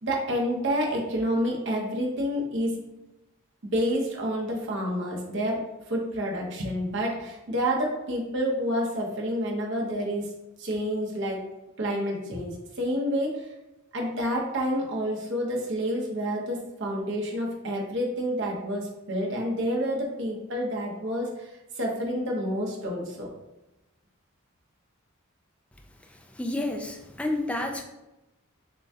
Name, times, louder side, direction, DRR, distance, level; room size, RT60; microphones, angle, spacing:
voice 1, 0.0-2.8 3.7-10.3 10.6-11.4 11.8-13.5 13.9-21.5 21.8-23.3, equal, 60° right, -1 dB, 0.9 m, -29 dB
voice 2, 26.4-27.8, left 1 dB, 5° left, 2 dB, 0.4 m, -30 dB
6.8 x 2.3 x 2.8 m, 0.97 s
head